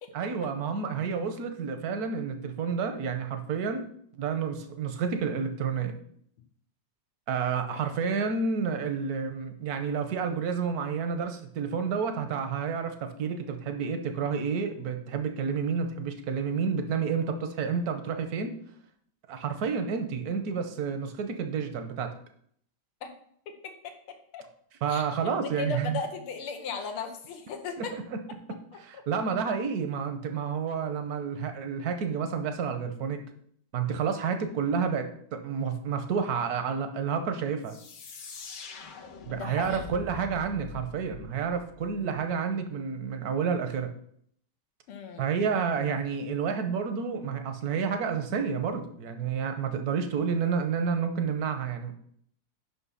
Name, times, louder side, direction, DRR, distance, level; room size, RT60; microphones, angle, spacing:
voice 1, 0.1-3.8 4.2-6.0 7.3-18.5 19.3-22.1 24.8-26.0 27.8-28.2 28.8-33.2 33.7-37.8 39.3-43.9 45.2-51.9, right 6 dB, 60° right, 7 dB, 1.0 m, -30 dB
voice 2, 23.5-23.9 24.3-24.4 24.9-25.0 25.4-27.9 39.3-39.9 44.9-45.2, left 5 dB, 90° left, 4 dB, 1.9 m, -36 dB
sound 1, 37.6-42.2, left 5 dB, 75° left, 1.9 m, -44 dB
6.0 x 5.7 x 5.6 m, 0.64 s
omnidirectional pair, 2.4 m